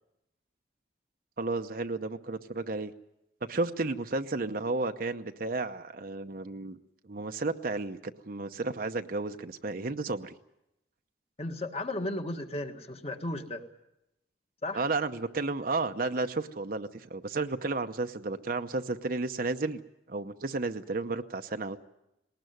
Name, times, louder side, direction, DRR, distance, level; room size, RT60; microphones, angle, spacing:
voice 1, 1.4-2.9 3.4-6.8 7.0-10.3 14.7-19.8 20.1-21.8, right 3 dB, 50° right, 7 dB, 0.8 m, -32 dB
voice 2, 11.4-13.6 14.6-14.9, left 1 dB, 35° left, 6 dB, 1.6 m, -35 dB
20.0 x 19.0 x 9.3 m, 0.86 s
head